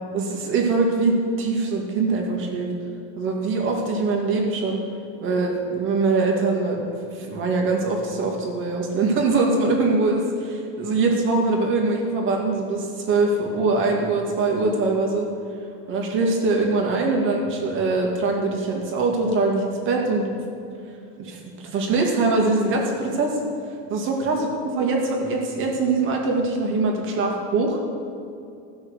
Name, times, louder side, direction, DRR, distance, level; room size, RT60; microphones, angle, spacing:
voice 1, 0.1-2.7 3.2-4.8 5.2-15.3 15.9-20.4 21.2-23.4 23.9-24.4 24.8-27.8, right 3 dB, 40° right, 0 dB, 2.3 m, -23 dB
16.0 x 6.3 x 6.5 m, 2.5 s
supercardioid pair, 150°, 31 cm